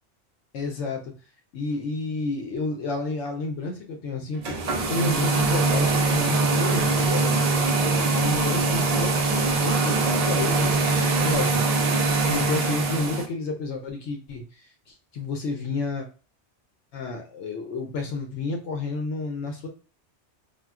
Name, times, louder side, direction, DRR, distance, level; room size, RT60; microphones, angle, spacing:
voice 1, 0.5-1.1 1.5-4.6 4.9-11.6 12.3-16.1 16.9-19.7, left 3 dB, 80° left, 2 dB, 0.9 m, -31 dB
sound 1, 4.4-13.3, right 3 dB, 65° right, 0.4 m, -22 dB
3.6 x 2.3 x 2.3 m, 0.37 s
omnidirectional pair, 1.2 m